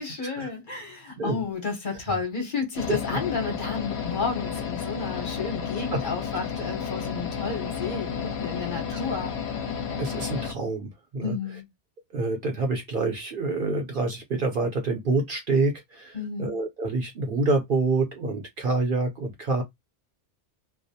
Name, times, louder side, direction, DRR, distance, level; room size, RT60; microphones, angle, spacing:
voice 1, 0.0-9.3 11.2-11.7 16.1-16.6, left 5 dB, 50° left, 0.9 m, -31 dB
sound 1, 2.7-10.5, left 7 dB, 70° left, 0.8 m, -32 dB
voice 2, 10.0-11.4 12.1-19.6, right 3 dB, 55° right, 0.7 m, -27 dB
2.2 x 2.1 x 2.7 m
omnidirectional pair, 1.2 m